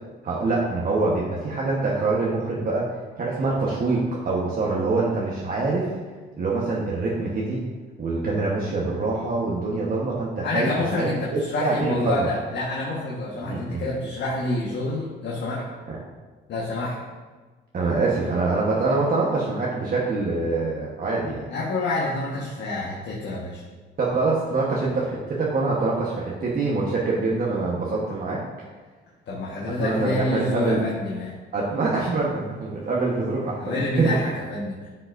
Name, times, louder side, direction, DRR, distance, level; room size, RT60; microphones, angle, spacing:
voice 1, 0.2-5.9 6.4-7.6 8.0-12.3 13.4-13.9 15.9-16.0 17.7-21.5 24.0-28.5 29.8-30.8 31.5-34.1, right 3 dB, 45° right, -5 dB, 1.3 m, -25 dB
voice 2, 10.4-15.6 16.5-16.9 21.5-23.6 29.3-31.3 33.6-34.9, left 2 dB, 65° left, -5 dB, 1.4 m, -27 dB
10.5 x 5.7 x 2.6 m, 1.3 s
cardioid pair, 90°, 20 cm